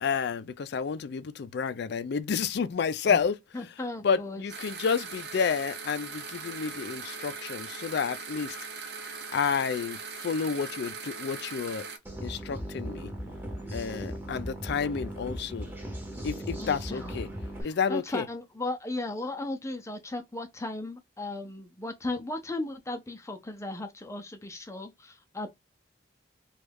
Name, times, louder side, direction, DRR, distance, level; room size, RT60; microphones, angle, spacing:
voice 1, 0.0-3.4 4.0-8.6 9.3-11.9 12.2-13.1 13.7-15.7 16.2-17.3 17.6-18.2, left 6 dB, 65° left, 0.4 m, -30 dB
voice 2, 3.5-4.5 16.6-17.1 17.6-25.5, left 2 dB, 15° left, 0.5 m, -36 dB
sound 1, 4.5-12.0, right 5 dB, 60° right, 0.7 m, -40 dB
sound 2, 12.0-17.6, equal, 10° right, 0.9 m, -38 dB
3.1 x 2.3 x 3.4 m
head